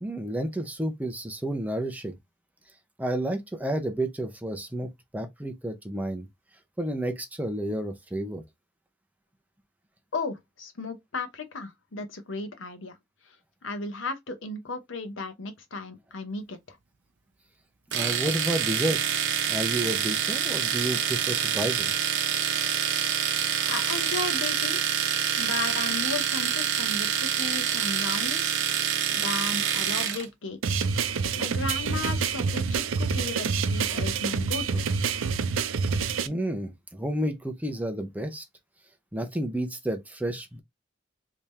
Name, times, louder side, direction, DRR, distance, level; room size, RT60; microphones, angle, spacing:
voice 1, 0.0-2.1 3.0-6.3 6.8-8.4 17.9-21.9 36.3-38.4 39.1-40.6, right 1 dB, 10° right, 0.6 m, -31 dB
voice 2, 10.1-12.9 13.3-13.4 13.6-16.8 23.7-24.8 25.4-28.8 29.1-30.9 31.4-34.9, left 3 dB, 70° left, 0.8 m, -35 dB
Domestic sounds home sounds, 17.9-30.2, right 8 dB, 60° right, 0.8 m, -26 dB
sound 1, 30.6-36.3, right 5 dB, 80° right, 0.4 m, -27 dB
3.5 x 2.8 x 3.1 m
head